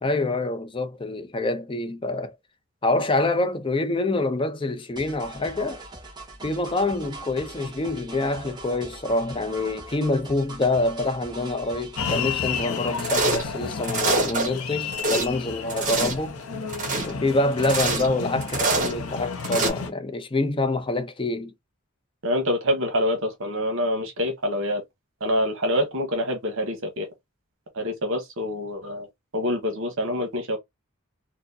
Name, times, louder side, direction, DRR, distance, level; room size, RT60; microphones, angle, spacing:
voice 1, 0.0-2.3 2.8-5.8 6.4-16.4 17.0-21.5, left 2 dB, 25° left, 0.5 m, -26 dB
sound 1, 5.0-12.7, right 2 dB, 20° right, 1.0 m, -41 dB
sound 2, 12.0-19.9, left 6 dB, 90° left, 0.7 m, -32 dB
sound 3, 13.0-13.5 13.8-14.5 14.8-15.3 15.7-16.2 16.7-17.1 17.6-18.1 18.4-18.9 19.4-19.7, right 3 dB, 40° right, 1.3 m, -25 dB
voice 2, 22.2-24.8 25.2-27.1 27.7-29.1 29.3-30.6, left 1 dB, 65° right, 1.0 m, -26 dB
4.4 x 2.1 x 2.6 m
head